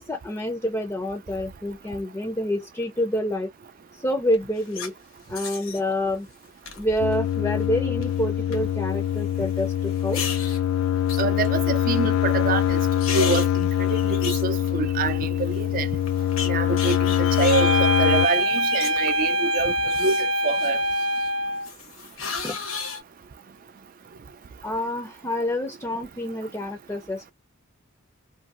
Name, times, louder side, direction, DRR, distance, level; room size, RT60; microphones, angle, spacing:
voice 1, 0.0-3.5 3.9-4.9 5.3-6.3 6.7-10.2 22.4-22.6 24.6-27.3, left 1 dB, 15° left, 0.5 m, -27 dB
sound 1, 4.3-4.9 5.4-5.8 6.6-7.3 7.6-8.1 8.5-8.6 9.9-10.6 11.1-12.0 12.3-12.4 12.7-15.2 15.5-15.6 16.1-19.3 19.5-21.3 21.6-23.0, left 5 dB, 75° left, 1.0 m, -34 dB
sound 2, 7.0-18.3, left 10 dB, 90° left, 0.3 m, -24 dB
voice 2, 11.2-12.8 13.1-15.9 16.5-19.7 20.0-20.8, right 4 dB, 40° right, 0.3 m, -26 dB
sound 3, 17.5-21.7, equal, 65° right, 0.7 m, -24 dB
2.7 x 2.7 x 2.4 m
head